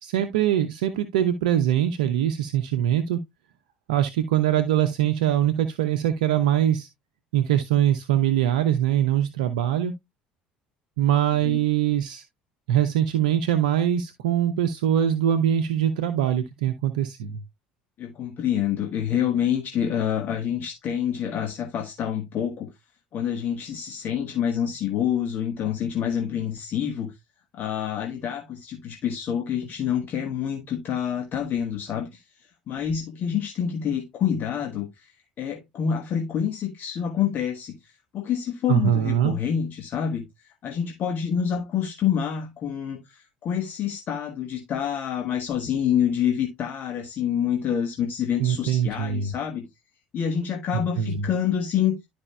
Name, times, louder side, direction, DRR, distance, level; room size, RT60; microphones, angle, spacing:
voice 1, 0.0-3.2 3.9-6.9 7.3-9.9 11.0-12.2 12.7-17.4 38.7-39.3 48.4-49.3 50.7-51.3, right 10 dB, 70° right, 0.7 m, -23 dB
voice 2, 18.0-22.7 23.1-27.1 27.5-32.2 32.7-35.1 35.4-37.7 38.1-40.2 40.6-49.7 50.1-52.0, left 9 dB, 45° left, 1.4 m, -27 dB
12.0 x 5.1 x 2.2 m
figure-of-eight pair, 60°, 4 cm